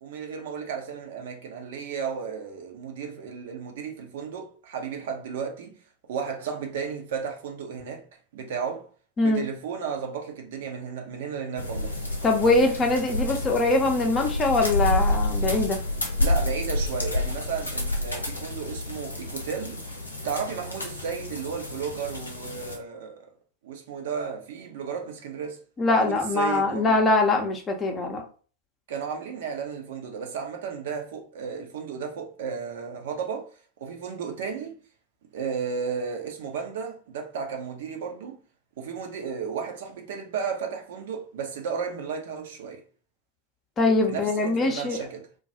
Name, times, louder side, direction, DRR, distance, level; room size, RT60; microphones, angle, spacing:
voice 1, 0.0-5.7 6.1-8.0 8.3-8.9 9.2-12.0 16.2-19.9 20.2-23.3 23.6-25.6 25.9-26.9 28.9-33.5 33.8-34.8 35.3-38.4 38.8-42.8 44.1-45.3, right 6 dB, 55° right, 0.6 m, -33 dB
sound 1, 11.6-22.8, left 2 dB, 80° left, 0.6 m, -29 dB
voice 2, 12.2-15.8 25.8-28.2 43.8-45.0, left 2 dB, 20° left, 0.6 m, -23 dB
2.2 x 2.2 x 2.7 m
figure-of-eight pair, 90°, 0 cm